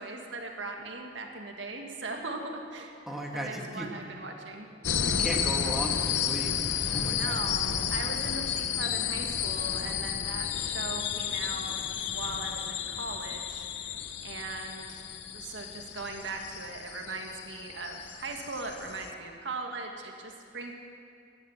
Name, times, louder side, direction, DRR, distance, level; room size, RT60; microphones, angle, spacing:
voice 1, 0.0-2.9 3.3-4.7 6.9-11.7 12.1-13.9 14.2-15.0 15.3-20.7, right 3 dB, 85° right, 2 dB, 1.8 m, -39 dB
voice 2, 3.1-3.9 5.0-7.5, equal, ahead, -1 dB, 1.7 m, -36 dB
sound 1, 4.8-19.1, left 8 dB, 70° left, 0.8 m, -32 dB
16.5 x 11.0 x 7.2 m, 2.3 s
head